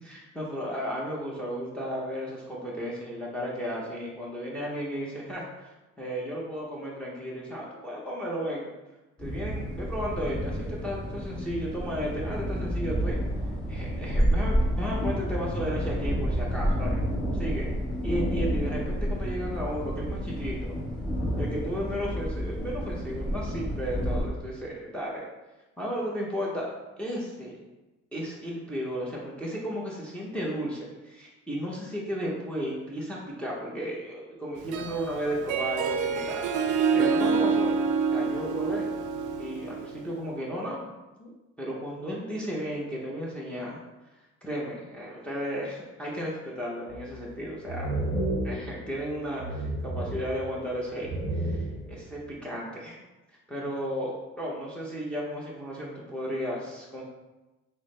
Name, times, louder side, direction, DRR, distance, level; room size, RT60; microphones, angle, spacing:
voice 1, 0.0-8.7 9.2-13.2 13.7-17.0 17.3-17.7 18.0-20.7 21.4-25.1 25.8-26.7 27.0-27.6 28.1-37.8 38.1-38.8 39.4-41.3 41.6-43.8 44.4-47.9 48.4-53.0 53.5-57.0, equal, 5° left, -5 dB, 0.8 m, -34 dB
sound 1, 9.2-24.3, equal, 25° left, 1.2 m, -30 dB
Harp, 34.6-40.1, right 5 dB, 85° right, 0.5 m, -27 dB
sound 2, 46.9-47.3 47.7-49.1 49.4-50.7 51.0-52.0, right 1 dB, 20° right, 1.3 m, -32 dB
6.0 x 2.1 x 3.2 m, 1.1 s
cardioid pair, 90°, 30 cm